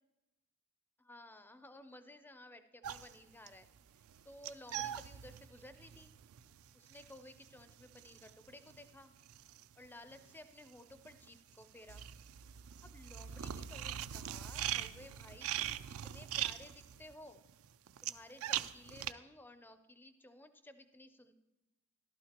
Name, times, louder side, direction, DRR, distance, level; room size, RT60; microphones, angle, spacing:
voice 1, 1.0-3.7 4.2-6.1 6.7-9.2 9.8-12.1 12.8-17.5 18.0-21.3, left 1 dB, 10° left, 10 dB, 0.4 m, -56 dB
sound 1, 2.8-10.3 10.6-19.1, right 11 dB, 70° right, 0.4 m, -42 dB
14.5 x 12.0 x 2.9 m, 1.0 s
head